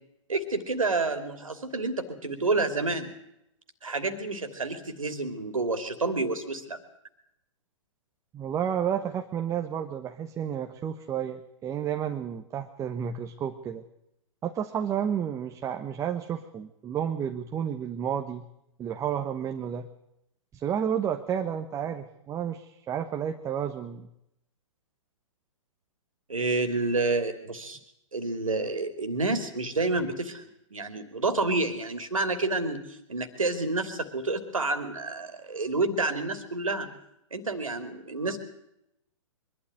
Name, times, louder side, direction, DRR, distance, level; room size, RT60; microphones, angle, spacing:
voice 1, 0.3-3.1 3.8-6.8 26.3-27.8 28.1-36.9 37.3-38.4, right 3 dB, 85° right, 8 dB, 2.8 m, -29 dB
voice 2, 8.3-13.8 14.4-18.5 18.8-19.8 20.5-24.1, right 8 dB, 20° right, 7 dB, 1.2 m, -31 dB
23.5 x 13.0 x 9.4 m, 0.81 s
hypercardioid pair, 120°, 17 cm